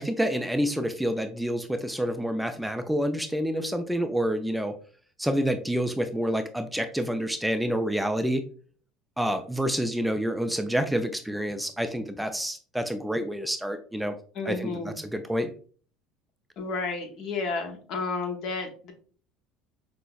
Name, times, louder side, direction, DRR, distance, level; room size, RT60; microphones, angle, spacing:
voice 1, 0.0-4.7 5.2-8.4 9.2-14.1 14.4-15.5, equal, 5° right, 7 dB, 0.3 m, -28 dB
voice 2, 14.4-14.9 16.6-18.9, left 4 dB, 60° left, 3 dB, 0.9 m, -31 dB
5.3 x 2.0 x 2.3 m, 0.43 s
supercardioid pair, 90°, 0 cm